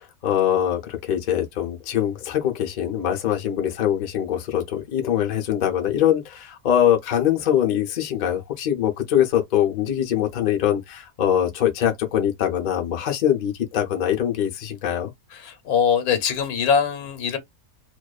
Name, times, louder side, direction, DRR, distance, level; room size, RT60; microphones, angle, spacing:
voice 1, 0.0-15.1, left 10 dB, 55° left, 0.5 m, -23 dB
voice 2, 15.3-17.4, left 7 dB, 90° left, 1.2 m, -22 dB
2.5 x 2.2 x 2.3 m
omnidirectional pair, 1.5 m